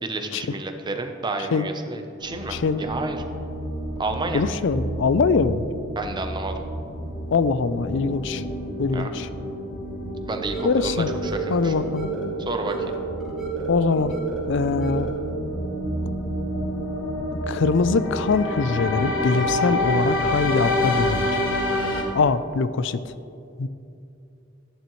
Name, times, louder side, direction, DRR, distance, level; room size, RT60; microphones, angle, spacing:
voice 1, 0.0-3.2 4.0-4.4 6.0-6.6 8.9-9.1 10.3-11.7 12.5-12.9, right 2 dB, 25° right, 5 dB, 0.7 m, -30 dB
sound 1, 2.2-22.0, left 1 dB, 90° left, 1.4 m, -29 dB
voice 2, 2.5-2.8 4.3-5.7 7.3-8.4 8.8-9.3 10.6-11.1 11.5-12.1 13.7-14.2 14.4-15.1 17.5-21.4 22.1-23.1 23.6-23.7, left 4 dB, 65° left, 14 dB, 0.4 m, -23 dB
sound 2, 10.3-15.3, right 6 dB, ahead, 2.3 m, -32 dB
12.5 x 11.0 x 3.1 m, 2.7 s
head